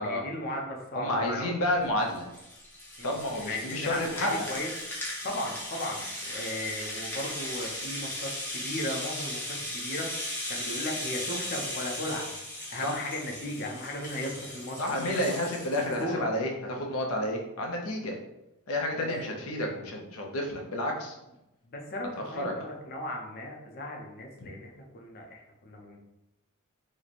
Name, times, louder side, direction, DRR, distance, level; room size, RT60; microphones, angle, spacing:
voice 1, 0.0-1.5 3.0-4.0 4.3-4.7 5.2-15.2 16.0-16.2 19.0-19.3 21.6-26.0, left 1 dB, 45° left, 0 dB, 0.7 m, -36 dB
voice 2, 0.9-2.3 3.0-4.5 12.8-12.9 14.8-18.1 18.7-21.2 22.4-22.5 24.4-24.5, left 1 dB, 80° left, 1 dB, 0.7 m, -30 dB
Rattle (instrument), 1.8-16.0, left 1 dB, 10° left, 0.9 m, -37 dB
3.1 x 2.2 x 4.1 m, 0.91 s
head